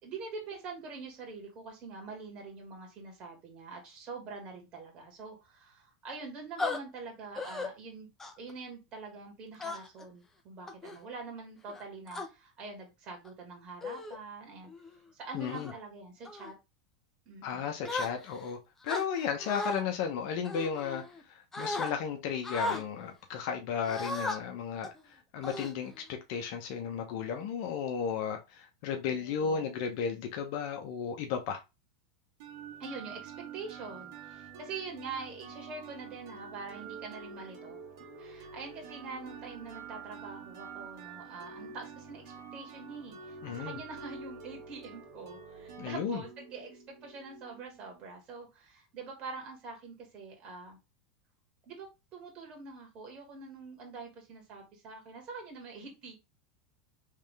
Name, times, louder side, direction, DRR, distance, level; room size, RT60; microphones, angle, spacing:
voice 1, 0.0-8.1 8.4-14.7 15.1-16.5 17.3-17.7 29.1-29.7 32.8-37.8 38.2-50.8 51.6-56.2, right 4 dB, 35° right, 1.9 m, -45 dB
sound 1, 6.6-6.8 7.4-7.7 8.2-8.5 9.6-10.0 10.7-11.0 11.7-12.3 13.1-13.3 13.8-14.2 14.7-14.9 15.4-15.7 16.2-16.5 17.8-18.5 18.9-19.8 20.4-21.2 21.5-21.9 22.4-22.8 23.8-24.4 24.8-25.0 25.4-26.1, left 2 dB, 10° left, 0.7 m, -36 dB
voice 2, 15.3-15.7 17.4-18.6 18.8-21.0 21.6-24.9 25.3-25.9 26.3-31.6 43.4-43.8 45.8-46.2, left 7 dB, 60° left, 0.8 m, -34 dB
sound 2, 32.4-48.0, right 6 dB, 65° right, 1.5 m, -47 dB
3.6 x 3.3 x 3.3 m
supercardioid pair, 135°, 3 cm